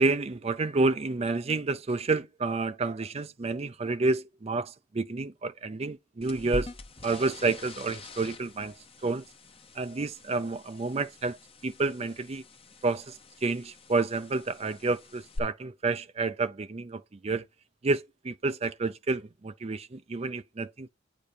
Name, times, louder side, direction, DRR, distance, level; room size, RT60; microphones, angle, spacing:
voice 1, 0.0-6.7 7.0-8.7 9.0-9.2 9.8-11.4 11.6-12.4 12.8-13.1 13.4-17.4 17.8-20.9, right 3 dB, 30° right, 0.5 m, -29 dB
sound 1, 6.2-15.4, left 2 dB, 30° left, 0.8 m, -45 dB
9.8 x 5.1 x 4.3 m
head